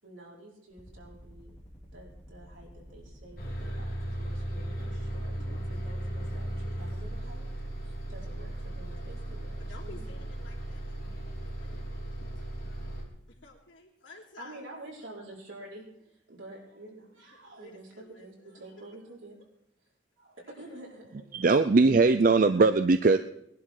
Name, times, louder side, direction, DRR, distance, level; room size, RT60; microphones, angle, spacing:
voice 1, 0.0-1.6 1.8-7.5 7.8-10.1 10.5-10.7 12.4-12.6 14.4-19.4 20.2-21.2, right 1 dB, 85° right, -3 dB, 4.8 m, -49 dB
sound 1, 0.7-7.1, equal, 5° left, 3.2 m, -50 dB
Bus, 3.4-13.0, right 1 dB, 50° left, 3.0 m, -36 dB
voice 2, 9.6-10.9 11.4-12.1 13.3-14.5 17.5-18.9 21.4-21.5, left 3 dB, 80° left, -2 dB, 3.3 m, -52 dB
voice 3, 21.3-23.2, right 3 dB, 45° right, 10 dB, 0.4 m, -20 dB
19.5 x 11.5 x 4.8 m, 0.79 s
head